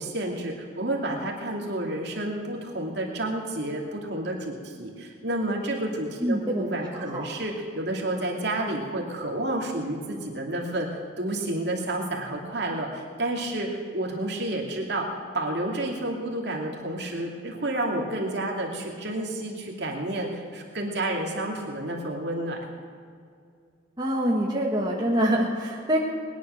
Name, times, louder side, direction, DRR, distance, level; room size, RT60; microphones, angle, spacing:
voice 1, 0.0-15.1 15.3-22.7, right 1 dB, 60° right, -1 dB, 2.6 m, -30 dB
voice 2, 6.2-6.6 6.9-7.2 24.0-26.0, equal, 20° right, -3 dB, 1.6 m, -25 dB
20.5 x 10.5 x 6.5 m, 2.3 s
head